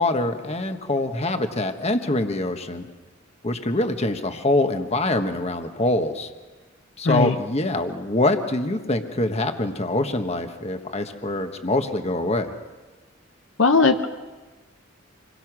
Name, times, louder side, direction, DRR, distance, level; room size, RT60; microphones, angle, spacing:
voice 1, 0.0-2.9 3.4-6.3 7.0-12.5, left 2 dB, 30° left, 7 dB, 1.4 m, -24 dB
voice 2, 7.0-7.3 13.6-14.1, left 4 dB, 65° left, 8 dB, 0.9 m, -18 dB
26.5 x 22.5 x 6.2 m, 1.3 s
head